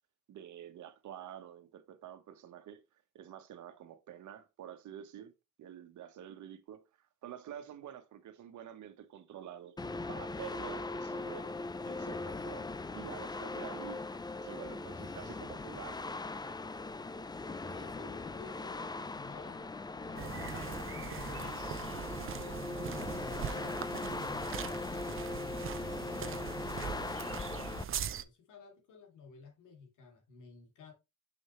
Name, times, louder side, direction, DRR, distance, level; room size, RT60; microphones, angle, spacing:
voice 1, 0.3-2.8 3.1-5.3 5.6-6.8 7.2-9.8 10.1-14.0 14.4-16.2, right 10 dB, 75° right, 1.3 m, -48 dB
sound 1, 9.8-27.8, left 3 dB, 15° left, 0.5 m, -40 dB
voice 2, 17.6-21.7 22.1-25.6 25.9-30.9, left 6 dB, 80° left, 2.6 m, -54 dB
sound 2, 20.2-28.2, right 9 dB, 45° right, 0.6 m, -41 dB
6.4 x 6.4 x 3.1 m
cardioid pair, 90°, 30 cm